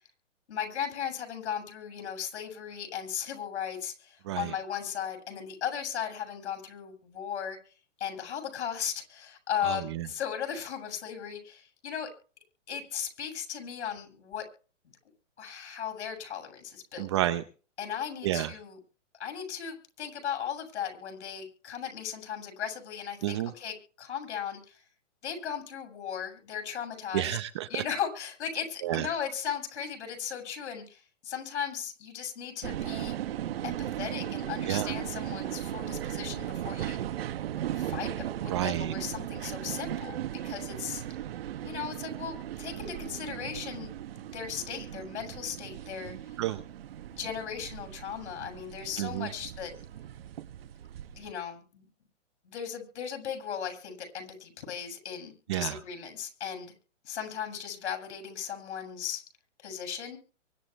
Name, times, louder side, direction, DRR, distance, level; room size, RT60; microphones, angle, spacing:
voice 1, 0.5-12.1 12.7-14.4 15.4-17.1 17.8-18.8 19.2-24.8 25.2-27.4 27.7-33.2 33.6-37.1 37.7-40.2 40.4-41.0 41.6-46.4 47.1-49.7 51.1-51.9 52.4-56.7 57.0-59.2 59.6-60.2, left 8 dB, 60° left, 5 dB, 7.5 m, -37 dB
voice 2, 9.6-10.1 17.0-17.4 18.2-18.5 23.2-23.5 27.1-27.8 28.8-29.1 34.7-34.9 38.5-39.0 46.4-46.6 49.0-49.3 55.5-55.8, right 14 dB, 25° right, 11 dB, 0.6 m, -30 dB
sound 1, 32.6-51.3, right 11 dB, 50° right, 1.2 m, -37 dB
24.0 x 11.5 x 3.5 m, 0.36 s
hypercardioid pair, 155°, 37 cm